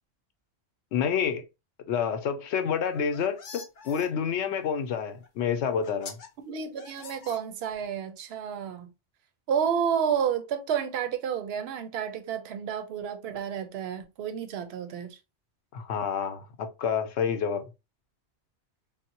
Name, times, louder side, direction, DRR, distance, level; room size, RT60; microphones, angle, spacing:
voice 1, 0.9-1.4 1.9-6.2 15.7-17.7, left 7 dB, 80° left, 0.9 m, -28 dB
sound 1, 2.8-4.1 5.2-5.3 5.8-6.3 6.8-7.8, left 5 dB, 50° left, 0.7 m, -45 dB
voice 2, 6.5-8.9 9.5-15.2, right 8 dB, 70° right, 0.8 m, -30 dB
4.0 x 2.1 x 2.7 m
omnidirectional pair, 1.1 m